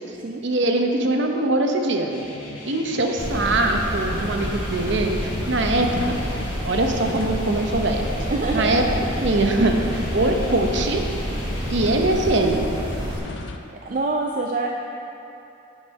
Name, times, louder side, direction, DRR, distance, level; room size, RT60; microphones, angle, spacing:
voice 1, 0.4-2.1 2.7-6.2 6.6-8.0 8.5-8.9 9.2-11.0 11.7-12.6, right 2 dB, 60° right, 3 dB, 0.8 m, -22 dB
sound 1, 2.1-11.9, left 1 dB, 85° left, 2.1 m, -39 dB
sound 2, 3.2-13.2, equal, 25° right, 1.8 m, -29 dB
sound 3, 3.4-13.6, left 3 dB, 60° left, 0.5 m, -37 dB
voice 2, 8.3-9.1 13.7-14.7, right 3 dB, 40° right, 0 dB, 0.4 m, -26 dB
9.4 x 5.3 x 5.2 m, 2.9 s
head